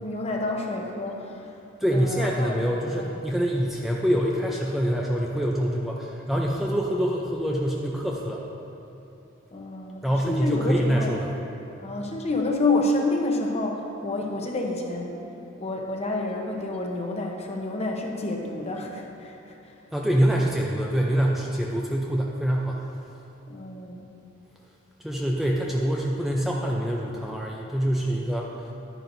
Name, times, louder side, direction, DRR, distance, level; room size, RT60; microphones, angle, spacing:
voice 1, 0.0-1.6 1.9-2.6 3.0-3.1 9.5-11.1 11.8-15.2 15.6-19.8 23.5-24.1, left 2 dB, 30° left, 1 dB, 0.9 m, -29 dB
voice 2, 1.8-8.4 10.0-11.3 19.9-22.8 25.0-28.7, equal, ahead, -3 dB, 0.5 m, -25 dB
11.0 x 10.0 x 2.7 m, 2.8 s
head